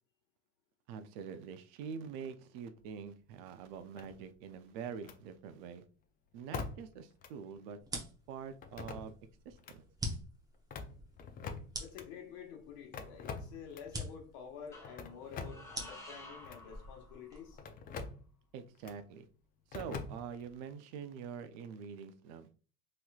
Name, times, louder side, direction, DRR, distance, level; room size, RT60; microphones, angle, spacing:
voice 1, 0.9-5.8 6.3-9.2 9.5-9.9 18.5-19.3 19.7-22.5, right 6 dB, 65° right, 0.5 m, -45 dB
sound 1, 4.0-4.5 5.0-5.2 6.5-7.0 7.2-7.3 8.6-9.3 9.6-9.8 10.5-12.1 12.9-14.0 14.8-15.7 16.4-16.7 17.6-18.2 18.8-19.0 19.7-20.5, left 5 dB, 25° left, 0.4 m, -44 dB
sound 2, 7.8-17.7, equal, 10° right, 0.7 m, -46 dB
voice 2, 11.8-17.6, left 7 dB, 65° left, 1.3 m, -49 dB
sound 3, 13.0-13.8 14.7-17.6, left 1 dB, 10° left, 0.9 m, -54 dB
3.1 x 2.9 x 2.3 m
supercardioid pair, 110°, 32 cm